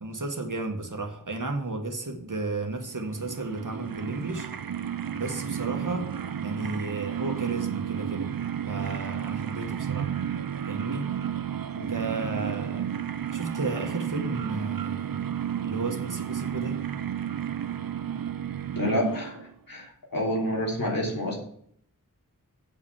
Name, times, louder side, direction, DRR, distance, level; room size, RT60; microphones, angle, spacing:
voice 1, 0.0-4.5 5.1-6.1 6.4-8.3 8.7-10.2 10.7-11.1 11.7-12.9 13.3-15.3 15.6-16.8, right 3 dB, 65° right, 4 dB, 1.6 m, -33 dB
sound 1, 2.9-19.6, right 9 dB, 85° right, 0.6 m, -32 dB
voice 2, 18.7-19.4 19.7-21.4, left 1 dB, 90° left, -2 dB, 3.0 m, -28 dB
8.2 x 5.4 x 7.1 m, 0.65 s
wide cardioid pair, 40°, 34 cm